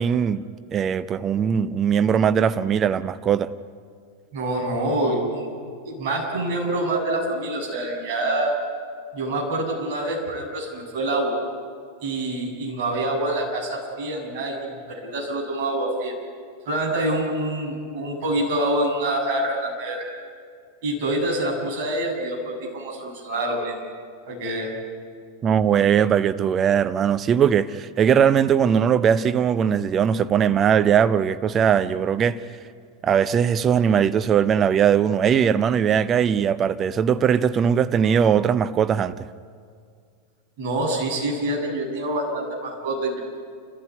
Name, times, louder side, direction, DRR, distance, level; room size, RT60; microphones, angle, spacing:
voice 1, 0.0-3.5 25.4-32.4 33.0-39.1, right 8 dB, 25° right, 0.6 m, -20 dB
voice 2, 4.3-5.5 5.8-8.5 9.1-11.4 12.0-16.1 16.7-20.0 20.8-23.8 24.3-24.7 40.6-43.2, right 1 dB, 50° right, 7.3 m, -26 dB
29.5 x 14.5 x 9.7 m
figure-of-eight pair, 90°, 0 cm